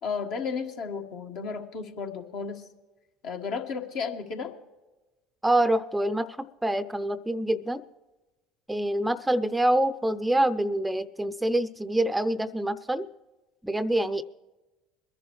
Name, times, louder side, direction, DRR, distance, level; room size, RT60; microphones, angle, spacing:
voice 1, 0.0-2.7 3.2-4.5, left 5 dB, 60° left, 2 dB, 1.6 m, -33 dB
voice 2, 5.4-7.8 8.7-13.1 13.6-14.2, right 1 dB, 10° right, 14 dB, 0.6 m, -26 dB
22.5 x 11.0 x 3.2 m, 1.1 s
hypercardioid pair, 70°, 0 cm